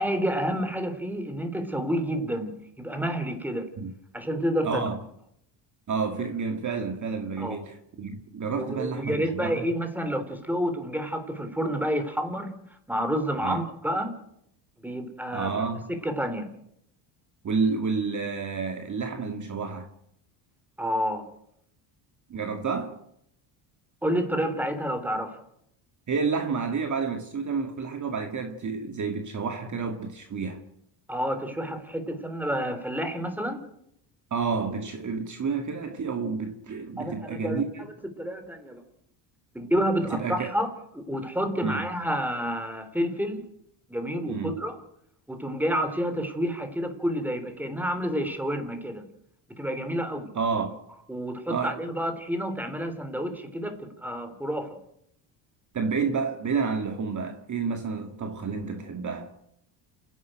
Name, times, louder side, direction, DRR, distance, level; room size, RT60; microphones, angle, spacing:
voice 1, 0.0-3.7 4.1-4.9 7.4-7.6 8.6-12.6 12.9-14.2 14.8-15.5 16.0-16.5 20.8-21.3 24.0-25.4 31.1-33.6 37.0-37.6 38.2-38.8 39.5-43.4 43.9-44.8 45.3-49.1 49.5-50.3 51.1-54.8, equal, 5° right, 3.8 m, -29 dB
voice 2, 4.6-5.0 5.9-9.6 13.4-13.6 15.3-15.9 17.4-19.9 22.3-23.0 26.1-30.6 34.3-37.9 40.1-40.5 41.6-41.8 44.3-44.5 50.4-50.8 51.5-51.8 55.7-59.3, right 5 dB, 35° right, 2.0 m, -30 dB
28.5 x 11.0 x 9.1 m
cardioid pair, 100°, 50 cm